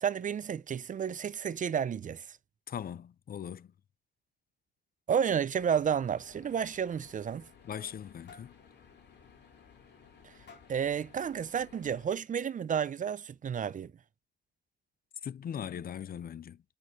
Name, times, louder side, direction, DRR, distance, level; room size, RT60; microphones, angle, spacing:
voice 1, 0.0-2.4 5.1-7.4 10.2-10.3 10.7-13.9, right 8 dB, 45° right, 0.5 m, -31 dB
voice 2, 2.7-3.7 7.6-8.5 15.2-16.6, left 8 dB, 55° left, 0.5 m, -40 dB
sound 1, 5.6-12.1, left 6 dB, 70° left, 4.0 m, -58 dB
sound 2, 7.5-8.0 8.3-8.6 9.0-9.2 9.5-9.6 10.5-10.8 12.0-12.1 12.7-13.2, left 4 dB, 90° left, 4.0 m, -55 dB
8.6 x 5.4 x 3.2 m
cardioid pair, 100°, 18 cm